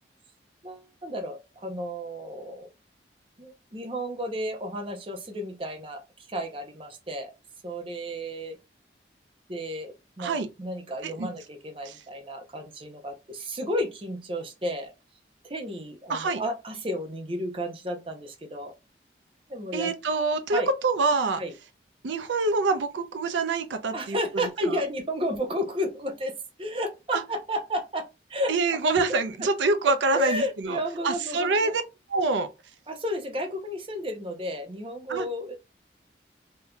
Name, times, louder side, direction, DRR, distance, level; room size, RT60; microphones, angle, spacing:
voice 1, 0.6-2.7 3.4-7.3 7.6-8.6 9.5-14.9 15.4-18.7 19.5-19.9 20.5-20.7 21.4-21.5 23.9-26.3 26.6-28.8 30.1-31.8 32.9-35.6, equal, 30° right, 0.6 m, -32 dB
voice 2, 16.1-16.4 19.7-21.4 22.0-24.2 27.1-27.2 28.5-30.8 31.0-31.8 32.1-32.5 35.1-35.3, right 3 dB, 85° right, 0.5 m, -25 dB
3.5 x 2.7 x 2.2 m
head